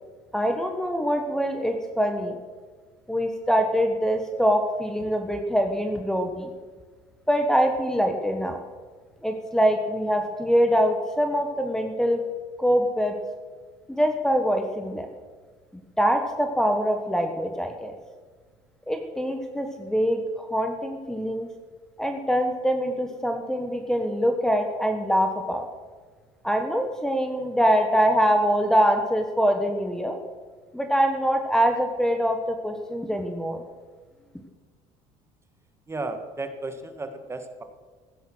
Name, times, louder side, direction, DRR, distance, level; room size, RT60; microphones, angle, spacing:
voice 1, 0.3-2.4 3.1-6.5 7.3-8.6 9.2-12.2 12.6-13.2 13.9-15.1 16.0-17.9 18.9-21.5 22.0-25.6 26.4-30.2 30.7-33.6, equal, 5° left, 5 dB, 1.3 m, -24 dB
voice 2, 35.9-37.6, right 2 dB, 20° right, 7 dB, 1.6 m, -34 dB
15.0 x 10.0 x 6.2 m, 1.5 s
cardioid pair, 100°, 14 cm